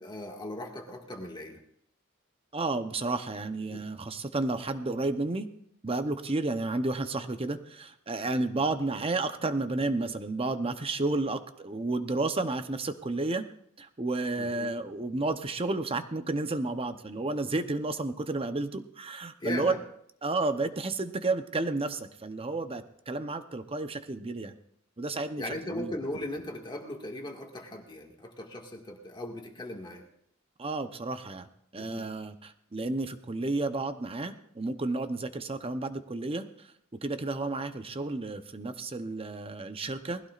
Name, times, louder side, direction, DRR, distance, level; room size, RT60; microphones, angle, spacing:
voice 1, 0.0-1.6 3.7-3.8 14.4-14.7 19.4-19.8 25.4-30.1 31.8-32.1, left 1 dB, 20° left, 1 dB, 1.9 m, -38 dB
voice 2, 2.5-5.5 5.8-13.5 13.8-19.7 20.2-24.6 25.0-25.9 30.6-31.5 31.7-36.7 37.0-40.2, right 2 dB, 30° right, 10 dB, 0.8 m, -31 dB
20.0 x 16.0 x 2.5 m, 0.70 s
head